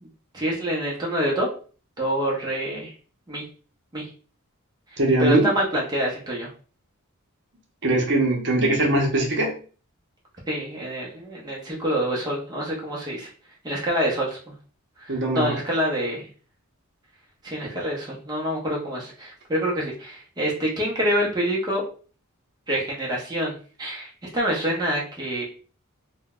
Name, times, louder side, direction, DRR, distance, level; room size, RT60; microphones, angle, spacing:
voice 1, 0.3-1.5 2.0-2.9 3.3-3.4 3.9-4.1 5.2-6.5 10.5-13.3 13.6-14.5 15.0-16.3 17.4-21.8 22.7-25.4, equal, 20° right, -4 dB, 0.7 m, -26 dB
voice 2, 5.0-5.5 7.8-9.5 15.1-15.5, right 2 dB, 55° right, -1 dB, 0.8 m, -21 dB
3.7 x 2.2 x 2.3 m, 0.39 s
head